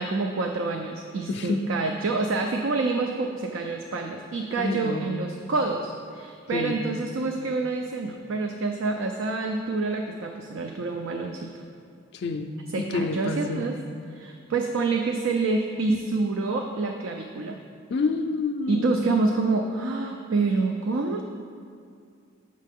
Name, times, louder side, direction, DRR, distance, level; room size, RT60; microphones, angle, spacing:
voice 1, 0.0-11.5 12.7-13.8 14.1-17.6 18.7-21.2, right 3 dB, 75° right, 4 dB, 0.4 m, -27 dB
voice 2, 1.3-1.6 4.6-5.1 6.5-6.8 12.1-12.5 12.8-13.7 17.9-19.1, left 3 dB, 55° left, 5 dB, 0.4 m, -28 dB
7.4 x 6.5 x 3.5 m, 2.3 s
head